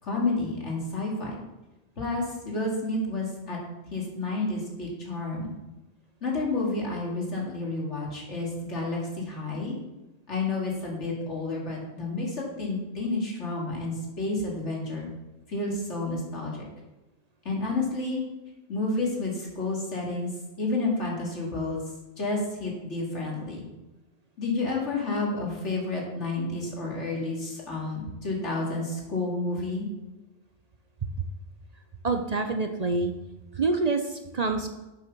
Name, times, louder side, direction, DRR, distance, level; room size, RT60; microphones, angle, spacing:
voice 1, 0.0-1.3 2.0-3.6 3.9-5.5 6.2-9.8 10.3-15.1 15.5-16.6 17.4-18.2 18.7-20.3 20.6-21.8 22.2-23.7 24.4-29.8, left 2 dB, 85° left, -3 dB, 2.8 m, -30 dB
voice 2, 32.0-33.1 33.5-34.7, right 3 dB, 40° right, 6 dB, 0.7 m, -26 dB
7.8 x 6.6 x 6.0 m, 1.0 s
omnidirectional pair, 1.2 m